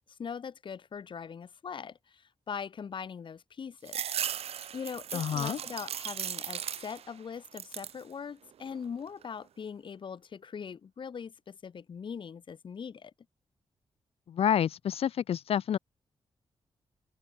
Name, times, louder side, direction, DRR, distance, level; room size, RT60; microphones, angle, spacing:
voice 1, 0.2-4.0 4.7-13.1, left 6 dB, 55° left, 2.9 m, -41 dB
sound 1, 3.9-7.1 7.4-8.0 8.5-9.2, right 9 dB, 85° right, 1.8 m, -37 dB
voice 2, 5.1-5.6 14.3-15.8, left 9 dB, 75° left, 0.9 m, -28 dB
open air
wide cardioid pair, 125°, 10 cm